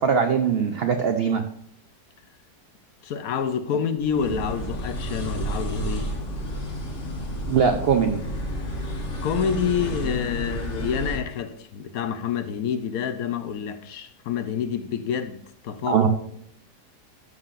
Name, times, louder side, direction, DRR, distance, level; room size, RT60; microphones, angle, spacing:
voice 1, 0.0-1.4 7.5-8.2 15.9-16.1, right 6 dB, 90° right, 0.5 m, -21 dB
voice 2, 3.0-6.1 9.2-16.0, left 7 dB, 70° left, 1.0 m, -28 dB
sound 1, 4.0-11.2, equal, 50° left, 1.8 m, -31 dB
12.5 x 5.7 x 2.5 m
omnidirectional pair, 1.8 m